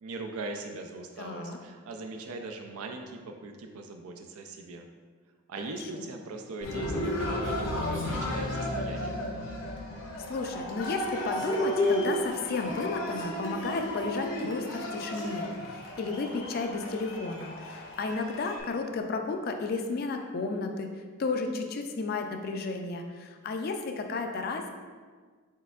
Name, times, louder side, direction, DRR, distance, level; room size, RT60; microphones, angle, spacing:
voice 1, 0.0-4.9 5.5-9.2, right 3 dB, 90° right, 4 dB, 0.4 m, -40 dB
voice 2, 1.2-1.6 5.6-6.1 10.3-20.9 21.2-24.7, left 3 dB, 45° left, 4 dB, 0.3 m, -33 dB
Cheering, 6.6-18.6, left 1 dB, 65° left, 0.8 m, -33 dB
4.5 x 4.3 x 2.3 m, 1.5 s
head